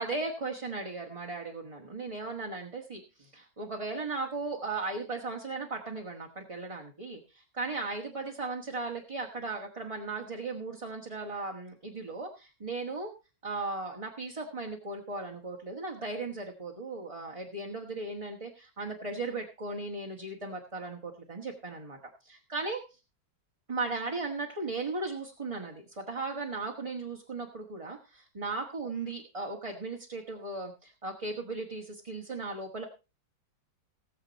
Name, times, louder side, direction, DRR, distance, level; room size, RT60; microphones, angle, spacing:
voice 1, 0.0-13.1 13.4-22.0 22.2-22.8 23.7-32.9, right 3 dB, 20° right, 0 dB, 1.4 m, -37 dB
18.5 x 7.6 x 4.1 m, 0.29 s
omnidirectional pair, 1.9 m